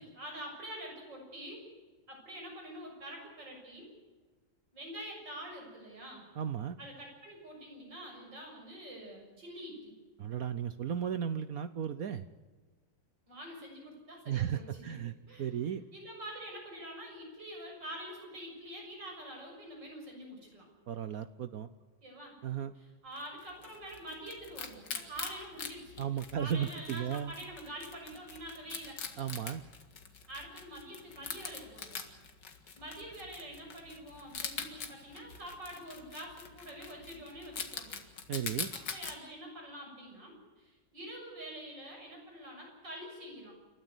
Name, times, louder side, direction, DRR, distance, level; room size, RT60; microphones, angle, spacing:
voice 1, 0.0-1.6 2.1-3.9 4.7-6.3 6.8-10.0 13.3-15.0 15.3-15.5 15.9-20.7 22.0-22.4 22.8-26.0 26.4-29.0 30.3-32.0 32.8-38.0 38.9-43.6, right 1 dB, 85° right, 1 dB, 7.5 m, -46 dB
voice 2, 6.4-6.8 10.2-12.2 14.3-15.1 15.4-15.8 20.9-21.7 22.4-22.7 26.0-27.3 29.2-29.6 38.3-38.7, right 9 dB, 60° right, 12 dB, 1.1 m, -35 dB
Wild animals, 23.2-39.2, left 6 dB, 75° left, 2.5 m, -44 dB
28.5 x 13.5 x 8.0 m, 1.3 s
omnidirectional pair, 1.9 m